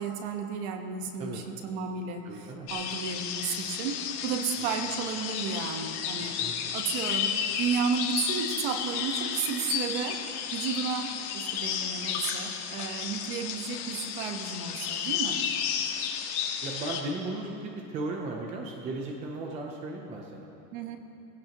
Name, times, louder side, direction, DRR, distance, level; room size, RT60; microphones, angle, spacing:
voice 1, 0.0-6.4 6.7-10.3 10.5-15.4 20.7-21.0, right 6 dB, 40° right, 5 dB, 1.2 m, -33 dB
voice 2, 2.2-2.7 6.2-6.7 16.6-20.5, right 2 dB, 15° right, 0 dB, 0.5 m, -36 dB
sound 1, 2.7-17.0, left 8 dB, 65° left, 1.6 m, -32 dB
19.5 x 16.0 x 2.9 m, 2.9 s
supercardioid pair, 165°, 48 cm